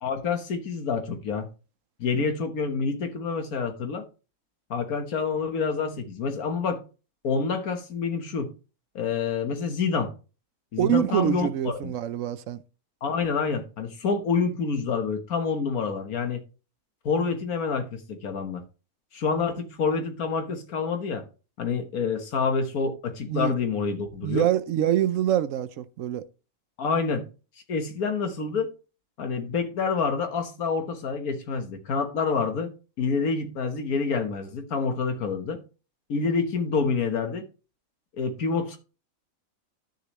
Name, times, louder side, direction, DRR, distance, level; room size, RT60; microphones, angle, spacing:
voice 1, 0.0-1.5 2.0-4.0 4.7-6.8 7.2-8.5 9.0-10.1 10.7-11.9 13.0-16.4 17.1-18.6 19.1-21.2 21.6-24.5 26.8-27.2 27.7-28.7 29.2-32.7 33.0-35.6 36.1-37.4 38.1-38.8, left 5 dB, 85° left, 1.7 m, -27 dB
voice 2, 10.8-12.6 23.3-23.5 24.2-26.3, right 11 dB, 70° right, 0.9 m, -25 dB
11.0 x 6.6 x 3.1 m
omnidirectional pair, 1.5 m